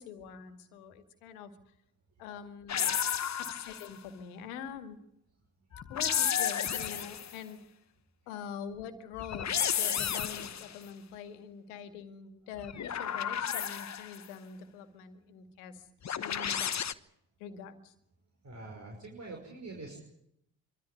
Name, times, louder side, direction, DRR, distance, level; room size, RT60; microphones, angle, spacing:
voice 1, 0.0-1.5 2.2-2.9 3.4-5.0 5.9-7.6 8.3-15.9 16.2-16.7 17.4-17.9, left 7 dB, 85° left, 9 dB, 2.2 m, -44 dB
sound 1, 2.7-4.0 5.7-7.4 9.2-10.8 12.6-14.2 16.0-16.9, left 8 dB, 40° left, 1.1 m, -32 dB
voice 2, 18.4-20.0, right 2 dB, 40° right, 1 dB, 5.8 m, -44 dB
24.0 x 14.0 x 10.0 m, 0.78 s
hypercardioid pair, 55°, 43 cm